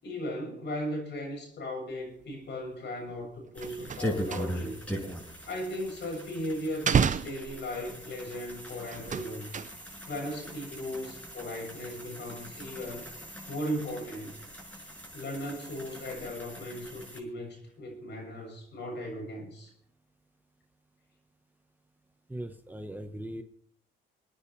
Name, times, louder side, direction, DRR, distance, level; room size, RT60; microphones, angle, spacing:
voice 1, 0.0-4.8 5.5-9.5 10.1-13.1 13.5-14.3 14.7-19.7, equal, 60° left, 1 dB, 7.2 m, -37 dB
sound 1, 3.1-3.2 3.5-4.9 5.1-6.3 6.7-8.1 8.9-10.1 10.4-10.8 11.1-11.3, right 7 dB, 40° right, 0.7 m, -31 dB
sound 2, 3.5-17.2, equal, 5° left, 6.5 m, -41 dB
voice 2, 22.3-23.4, right 1 dB, 10° right, 6 dB, 1.3 m, -39 dB
28.5 x 9.9 x 3.3 m, 0.64 s
cardioid pair, 90°, 20 cm